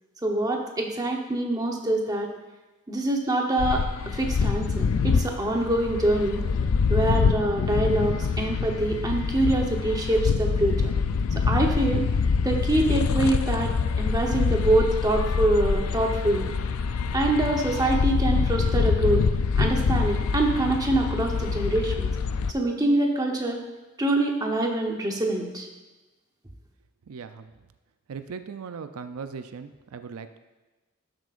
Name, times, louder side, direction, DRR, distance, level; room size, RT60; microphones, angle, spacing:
voice 1, 0.2-2.3 2.9-6.4 6.9-10.9 11.4-12.1 12.4-13.7 14.0-16.5 17.1-19.2 19.6-22.1 22.5-23.6 24.0-25.7, right 1 dB, 20° right, 1 dB, 0.9 m, -25 dB
sound 1, 3.6-22.5, left 5 dB, 75° left, 0.4 m, -25 dB
voice 2, 27.1-27.5 28.1-30.4, right 5 dB, 90° right, 9 dB, 0.4 m, -38 dB
12.0 x 7.5 x 2.5 m, 1.2 s
head